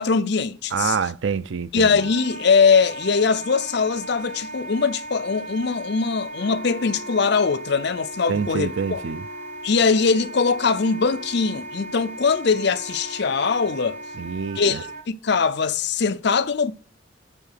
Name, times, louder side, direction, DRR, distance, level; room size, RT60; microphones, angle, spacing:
voice 1, 0.0-1.0 1.7-9.0 9.6-14.0 14.5-16.7, left 5 dB, 55° left, 0.6 m, -21 dB
voice 2, 0.7-1.9 8.3-9.2 14.2-14.8, right 6 dB, 65° right, 0.5 m, -26 dB
Wind instrument woodwind instrument, 2.0-15.0, right 2 dB, 40° right, 0.8 m, -37 dB
Wind instrument woodwind instrument 2, 6.3-14.3, left 2 dB, 80° right, 1.2 m, -44 dB
9.1 x 3.7 x 5.7 m
head